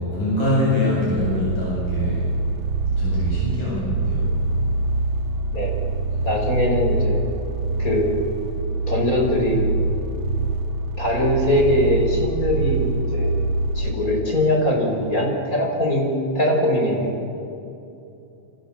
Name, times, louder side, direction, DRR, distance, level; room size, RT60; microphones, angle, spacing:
voice 1, 0.0-2.3 3.0-4.3 6.2-6.3, left 2 dB, 65° left, -6 dB, 9.1 m, -24 dB
sound 1, 1.2-13.9, right 3 dB, 60° right, 1.9 m, -24 dB
voice 2, 6.2-7.2 7.8-8.1 8.9-9.6 11.0-13.4 13.8-17.1, left 1 dB, 20° left, 1 dB, 5.5 m, -21 dB
28.5 x 27.0 x 7.5 m, 2.8 s
omnidirectional pair, 4.1 m